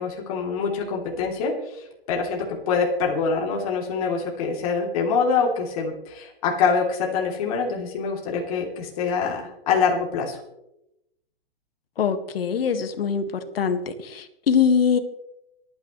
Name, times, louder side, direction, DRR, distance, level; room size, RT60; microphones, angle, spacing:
voice 1, 0.0-10.4, left 5 dB, 35° left, 0 dB, 3.1 m, -25 dB
voice 2, 12.0-13.2 13.6-13.8 14.1-15.0, left 7 dB, 70° left, 8 dB, 1.8 m, -22 dB
26.5 x 9.5 x 3.2 m, 0.87 s
hypercardioid pair, 165°, 30 cm